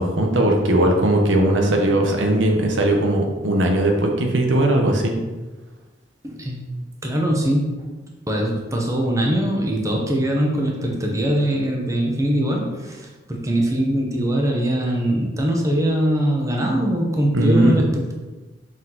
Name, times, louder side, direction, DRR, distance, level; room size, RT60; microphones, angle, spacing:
voice 1, 0.0-5.1 17.3-17.8, right 1 dB, 80° right, 2 dB, 1.0 m, -18 dB
voice 2, 6.2-7.6 8.3-18.1, right 1 dB, 15° right, -1 dB, 0.9 m, -22 dB
5.8 x 5.2 x 3.9 m, 1.2 s
head